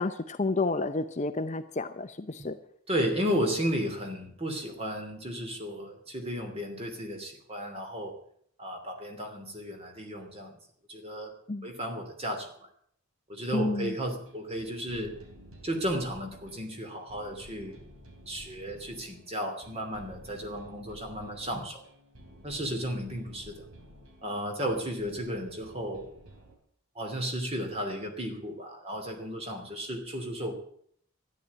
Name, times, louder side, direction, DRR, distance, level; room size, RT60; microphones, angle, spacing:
voice 1, 0.0-2.6 11.5-11.7 13.5-13.9, left 3 dB, 35° left, 10 dB, 0.6 m, -30 dB
voice 2, 2.9-8.2 8.6-10.6 10.9-11.3 11.6-12.7 13.3-15.2 15.6-17.8 18.3-21.8 22.4-23.6 24.2-26.1 26.9-30.5, equal, 30° right, 4 dB, 2.8 m, -34 dB
sound 1, 14.2-26.6, right 1 dB, 80° right, 3.6 m, -52 dB
13.5 x 10.5 x 8.5 m, 0.64 s
head